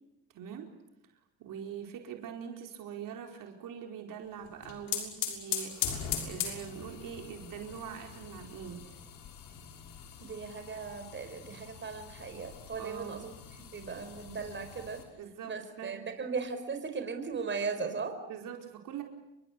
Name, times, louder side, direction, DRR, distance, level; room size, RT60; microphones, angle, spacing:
voice 1, 0.3-0.7 1.4-9.0 12.8-13.3 15.1-16.0 18.3-19.0, right 8 dB, 65° right, 3 dB, 4.8 m, -43 dB
sound 1, 4.4-15.0, left 9 dB, 75° left, 6.3 m, -40 dB
voice 2, 10.2-13.3 13.7-15.0 15.4-18.1, right 5 dB, 30° right, 7 dB, 5.1 m, -37 dB
30.0 x 23.0 x 8.5 m, 0.89 s
cardioid pair, 105°, 35 cm